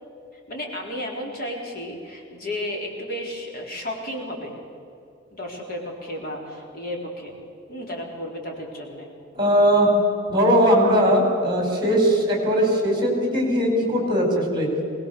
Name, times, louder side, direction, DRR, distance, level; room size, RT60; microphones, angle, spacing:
voice 1, 0.5-4.6 5.3-7.3 7.7-9.1, left 1 dB, 50° left, -1 dB, 3.9 m, -33 dB
voice 2, 9.3-9.9 10.3-14.7, equal, 25° right, 1 dB, 5.0 m, -19 dB
22.5 x 19.5 x 6.9 m, 2.6 s
head